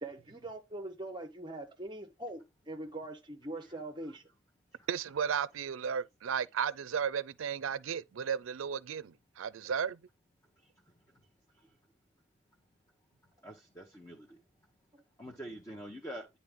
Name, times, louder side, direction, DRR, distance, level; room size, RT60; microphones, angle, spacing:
voice 1, 0.0-4.2 14.9-15.0, right 1 dB, 25° right, 0.7 m, -42 dB
voice 2, 4.9-10.0, right 7 dB, 90° right, 0.4 m, -34 dB
voice 3, 13.4-14.4 15.2-16.4, equal, 15° left, 0.8 m, -45 dB
10.0 x 4.1 x 3.5 m
head